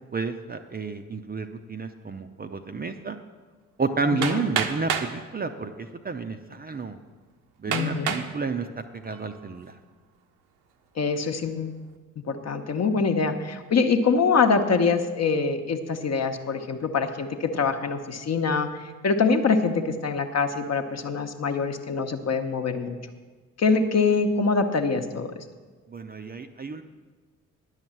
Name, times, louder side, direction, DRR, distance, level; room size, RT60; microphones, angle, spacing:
voice 1, 0.1-3.2 3.8-7.0 7.6-9.7 25.9-26.8, right 4 dB, 20° right, 6 dB, 0.6 m, -31 dB
voice 2, 4.1-4.5 7.7-8.2 11.0-11.8 12.3-23.0 23.6-25.4, left 4 dB, 35° left, 6 dB, 1.0 m, -24 dB
Hammer, 4.2-5.1 6.1-6.2 6.7-6.8 7.7-8.3 8.9-9.3, right 8 dB, 65° right, 0.9 m, -28 dB
10.5 x 6.5 x 7.4 m, 1.4 s
figure-of-eight pair, 40°, 43 cm